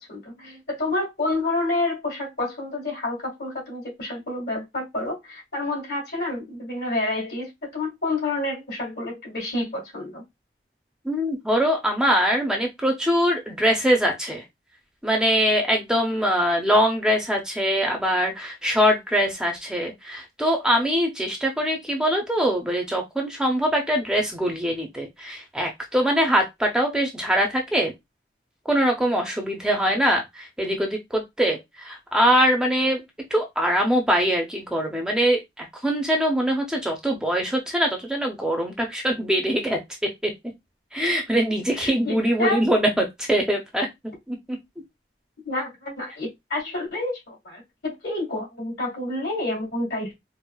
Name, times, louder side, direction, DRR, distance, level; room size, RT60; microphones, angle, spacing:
voice 1, 0.1-10.2 41.7-42.6 45.5-50.2, left 2 dB, 65° left, 1.8 m, -29 dB
voice 2, 11.0-14.4 15.0-27.9 28.7-33.0 33.3-39.8 40.2-40.3 40.9-43.9 44.3-44.6, equal, 5° right, 0.5 m, -23 dB
4.5 x 2.0 x 2.3 m
head